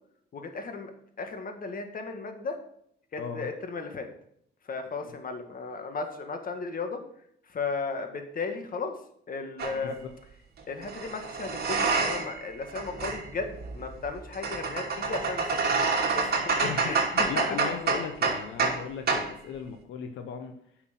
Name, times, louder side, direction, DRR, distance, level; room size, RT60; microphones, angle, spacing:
voice 1, 0.3-0.9 1.2-2.6 3.1-4.1 4.6-7.0 7.5-9.0 9.3-10.0 10.7-15.7 16.1-17.3 17.6-17.7, left 4 dB, 45° left, 6 dB, 1.8 m, -35 dB
sound 1, 9.6-9.8 10.8-12.4 12.7-18.8 19.1-19.3, right 4 dB, 50° right, 2.7 m, -28 dB
voice 2, 9.7-10.1 16.6-20.5, left 7 dB, 80° left, 6 dB, 1.0 m, -37 dB
10.0 x 6.1 x 5.8 m, 0.69 s
cardioid pair, 90°, 20 cm